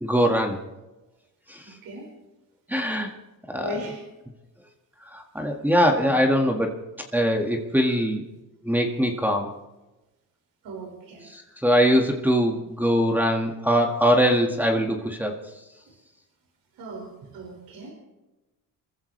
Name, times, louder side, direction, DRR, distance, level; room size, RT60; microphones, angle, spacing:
voice 1, 0.0-0.6 1.5-1.8 2.7-3.1 3.5-3.7 5.1-6.7 7.1-8.2 8.6-9.5 11.2-15.4, equal, 5° right, 2 dB, 1.8 m, -22 dB
voice 2, 1.6-2.1 3.6-4.0 10.6-11.2 16.8-17.9, right 1 dB, 75° right, 0 dB, 5.4 m, -37 dB
27.0 x 15.0 x 3.3 m, 1.0 s
cardioid pair, 125°, 35 cm